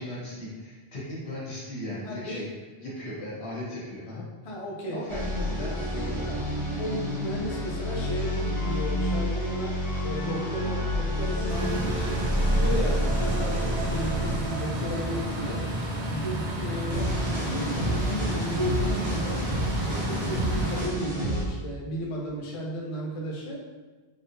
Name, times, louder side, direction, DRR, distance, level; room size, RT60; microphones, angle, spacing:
voice 1, 0.0-2.5 2.8-4.2 4.9-6.5, left 1 dB, 75° left, -8 dB, 1.6 m, -37 dB
voice 2, 2.0-2.5 4.4-5.2 6.2-6.3 6.8-9.8 10.0-12.3 12.5-15.7 16.1-19.4 19.8-23.6, equal, 40° left, -2 dB, 0.5 m, -34 dB
sound 1, 5.1-21.4, equal, 65° right, 1.6 m, -29 dB
sound 2, 11.5-20.9, right 1 dB, 45° right, 0.6 m, -31 dB
3.6 x 3.5 x 2.7 m, 1.3 s
omnidirectional pair, 1.1 m